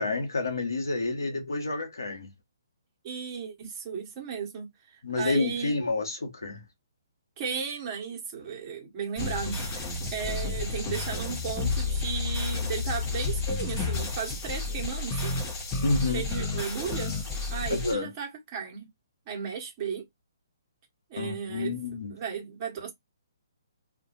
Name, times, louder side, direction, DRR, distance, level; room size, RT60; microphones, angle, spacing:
voice 1, 0.0-2.3 5.0-6.6 15.8-16.2 17.7-18.1 21.2-22.1, left 3 dB, 75° left, 1.1 m, -29 dB
voice 2, 3.0-5.8 7.4-15.3 16.1-17.2 17.5-18.9 19.3-20.1 21.1-21.8 22.1-22.9, right 6 dB, 25° right, 1.2 m, -35 dB
sound 1, 9.2-17.9, left 3 dB, 25° left, 1.0 m, -31 dB
2.6 x 2.4 x 2.4 m
figure-of-eight pair, 135°, 2 cm